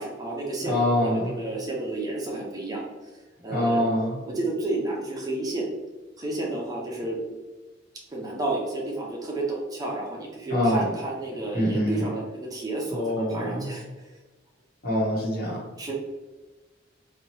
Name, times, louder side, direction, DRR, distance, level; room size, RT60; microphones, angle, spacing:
voice 1, 0.0-2.8 3.4-3.8 4.2-5.7 6.2-7.2 8.1-12.2 12.5-14.1 15.8-15.9, right 2 dB, 20° right, -3 dB, 0.5 m, -31 dB
voice 2, 0.6-1.3 3.5-4.2 10.5-10.8 11.5-12.0 12.9-13.7 14.8-15.6, left 1 dB, 55° left, -4 dB, 1.0 m, -24 dB
2.8 x 2.2 x 3.1 m, 1.2 s
head